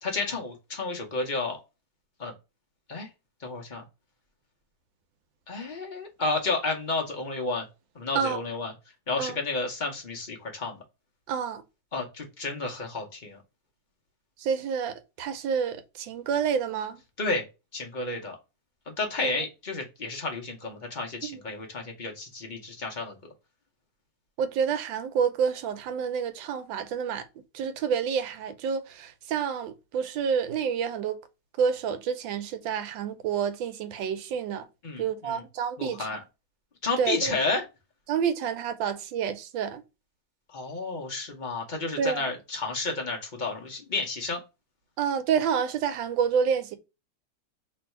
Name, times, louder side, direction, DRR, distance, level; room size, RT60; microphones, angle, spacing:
voice 1, 0.0-1.6 2.2-2.3 2.9-3.1 3.4-3.8 5.5-7.7 7.9-8.7 9.1-10.8 11.9-13.4 17.2-17.5 17.7-18.4 18.9-23.3 34.8-35.4 35.8-36.2 36.8-37.6 40.5-44.4, left 3 dB, 40° left, 0.6 m, -31 dB
voice 2, 11.3-11.6 14.4-17.0 19.2-19.3 21.2-21.4 24.4-27.3 27.5-31.2 31.6-34.7 35.0-36.2 37.0-37.3 38.1-39.8 42.0-42.3 45.0-46.8, right 7 dB, 90° right, 1.4 m, -28 dB
3.1 x 2.6 x 4.4 m
omnidirectional pair, 2.0 m